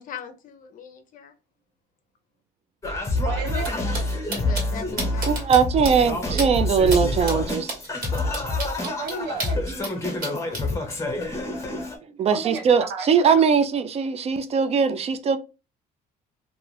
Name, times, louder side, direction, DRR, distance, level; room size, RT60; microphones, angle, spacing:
voice 1, 0.0-1.3 4.4-5.4 7.2-7.5 9.8-10.6, left 6 dB, 55° left, 0.5 m, -39 dB
Singing, 2.8-12.0, left 1 dB, 20° left, 1.0 m, -27 dB
voice 2, 3.2-3.7 8.8-9.7 12.3-13.1 13.3-13.4, right 5 dB, 90° right, 0.5 m, -32 dB
sound 1, 3.6-3.7 3.9-4.0 4.3-4.6 5.0-5.6 5.8-5.9 6.4-6.5 6.9-7.0 7.3-9.9 10.2-10.6, right 2 dB, 55° right, 1.5 m, -30 dB
voice 3, 5.3-7.7 12.2-15.4, right 6 dB, 40° right, 0.4 m, -20 dB
2.5 x 2.3 x 3.3 m
cardioid pair, 110°, 17 cm